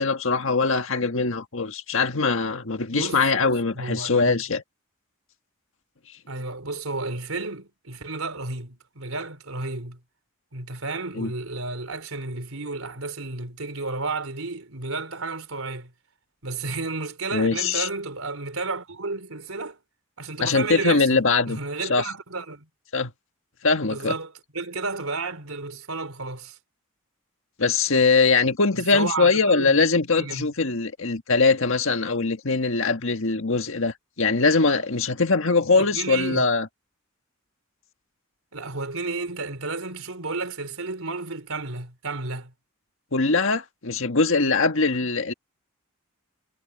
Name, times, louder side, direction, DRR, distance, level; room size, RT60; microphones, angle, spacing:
voice 1, 0.0-4.6 11.2-11.3 17.3-17.9 20.4-22.1 22.9-23.1 23.6-24.2 27.6-36.7 43.1-45.3, left 4 dB, 65° left, 1.7 m, -22 dB
voice 2, 2.9-4.4 6.3-10.0 10.5-15.9 16.4-19.8 20.2-21.2 21.5-22.7 23.8-26.6 28.9-29.8 30.2-30.5 35.7-36.4 38.5-42.5 44.9-45.0, right 3 dB, 75° right, 3.8 m, -32 dB
head